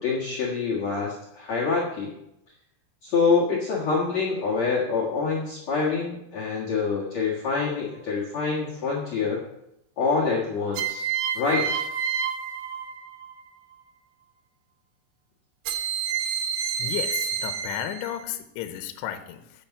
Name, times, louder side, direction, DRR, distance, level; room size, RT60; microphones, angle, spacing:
voice 1, 0.0-2.1 3.0-9.4 10.0-11.0 11.3-11.8, left 4 dB, 60° left, -5 dB, 1.9 m, -26 dB
sound 1, 7.7-8.2 10.8-13.4 15.7-18.2, right 7 dB, 80° right, 2.1 m, -29 dB
voice 2, 16.8-19.7, left 11 dB, 80° left, 9 dB, 3.1 m, -33 dB
8.5 x 8.5 x 7.1 m, 0.81 s
omnidirectional pair, 5.6 m